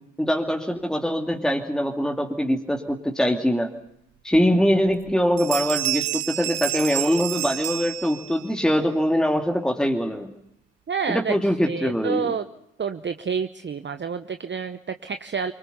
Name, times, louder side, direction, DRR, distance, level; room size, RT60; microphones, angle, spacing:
voice 1, 0.2-3.7 4.2-10.3 11.1-12.3, equal, ahead, 2 dB, 2.6 m, -23 dB
sound 1, 4.3-4.4 4.9-5.1 5.4-8.5, right 16 dB, 65° right, 1.3 m, -29 dB
voice 2, 10.9-11.3 11.7-12.4 12.8-15.5, right 6 dB, 25° right, 10 dB, 1.0 m, -28 dB
24.5 x 23.0 x 7.0 m, 0.78 s
figure-of-eight pair, 45°, 40 cm